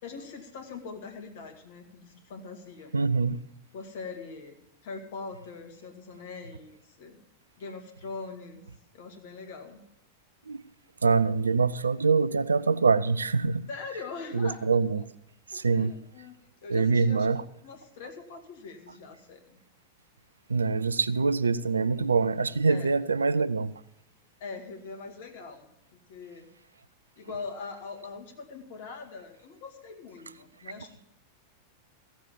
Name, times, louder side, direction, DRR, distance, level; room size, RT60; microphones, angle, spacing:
voice 1, 0.0-2.9 3.7-4.6 4.8-7.2 7.6-8.6 8.9-9.8 13.7-14.6 15.5-16.4 16.6-17.3 17.6-19.6 22.7-22.9 24.4-25.7 26.1-26.5 27.2-30.9, left 4 dB, 55° left, 2.0 m, -42 dB
voice 2, 2.9-3.4 10.5-10.6 11.0-13.7 14.3-15.0 15.5-16.0 16.7-17.4 20.5-23.7, right 4 dB, 75° right, 0.4 m, -24 dB
15.0 x 7.3 x 7.1 m
figure-of-eight pair, 90°, 0 cm